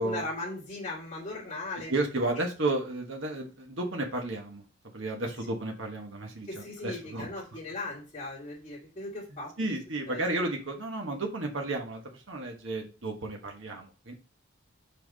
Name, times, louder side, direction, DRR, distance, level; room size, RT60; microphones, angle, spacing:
voice 1, 0.0-1.9 2.3-2.4 6.5-9.5 10.1-10.2, left 2 dB, 30° left, -9 dB, 2.8 m, -38 dB
voice 2, 1.9-4.6 4.9-7.3 9.6-14.1, right 2 dB, 70° right, 1 dB, 1.4 m, -32 dB
5.9 x 5.8 x 4.0 m, 0.33 s
head